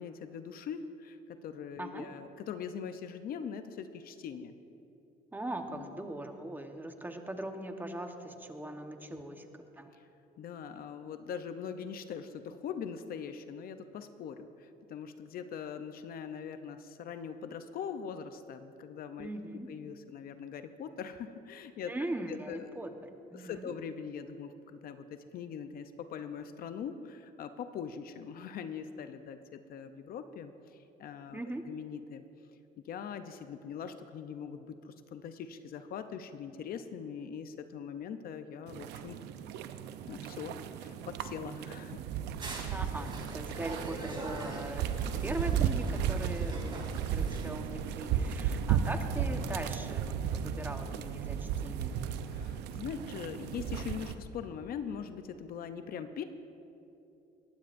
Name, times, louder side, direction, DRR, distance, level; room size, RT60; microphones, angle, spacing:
voice 1, 0.0-4.6 5.7-5.9 9.1-9.4 10.4-19.3 19.7-21.9 22.3-22.8 23.3-25.0 25.3-32.2 32.9-39.2 40.1-42.0 52.3-56.2, left 7 dB, 60° left, 9 dB, 0.7 m, -42 dB
voice 2, 1.8-2.1 5.3-9.4 9.8-9.9 19.2-19.7 21.9-22.9 23.3-23.7 31.3-31.7 42.7-52.0, right 1 dB, 10° right, 5 dB, 1.1 m, -40 dB
sound 1, 38.7-54.1, right 8 dB, 85° right, 0.7 m, -34 dB
sound 2, 42.4-47.5, right 2 dB, 30° right, 2.6 m, -43 dB
21.0 x 15.5 x 2.6 m, 2.9 s
cardioid pair, 110°, 17 cm